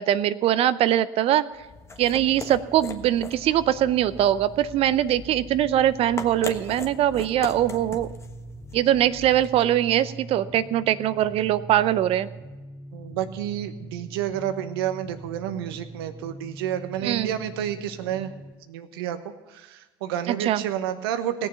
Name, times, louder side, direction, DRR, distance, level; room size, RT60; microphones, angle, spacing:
voice 1, 0.0-1.5 2.0-8.1 8.7-12.3 17.0-17.3 20.4-20.6, right 12 dB, 50° right, 16 dB, 0.6 m, -22 dB
sound 1, 1.5-9.7, left 3 dB, 20° left, 1.3 m, -40 dB
sound 2, 2.1-18.5, right 2 dB, ahead, 1.8 m, -43 dB
voice 2, 12.9-18.3 18.6-21.5, right 10 dB, 75° right, 10 dB, 1.0 m, -30 dB
17.5 x 7.1 x 6.8 m, 1.2 s
hypercardioid pair, 75°, 13 cm